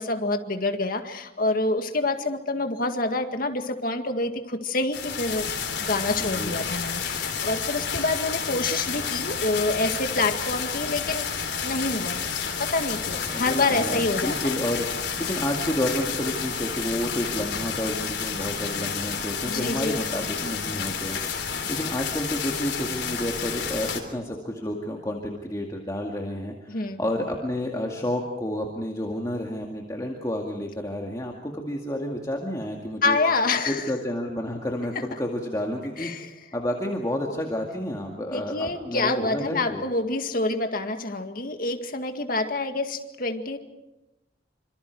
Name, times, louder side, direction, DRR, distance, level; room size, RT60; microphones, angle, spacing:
voice 1, 0.0-5.5 5.8-11.3 11.6-12.3 12.6-14.3 19.4-20.0 26.7-27.0 33.0-33.9 36.0-36.3 38.3-43.6, left 2 dB, 55° left, 6 dB, 2.0 m, -27 dB
sound 1, 4.9-24.0, left 6 dB, 85° left, 3.6 m, -30 dB
voice 2, 6.2-6.5 13.3-33.2 33.7-36.1 36.5-39.8, left 1 dB, 20° left, 0 dB, 2.2 m, -30 dB
27.0 x 26.0 x 4.7 m, 0.98 s
head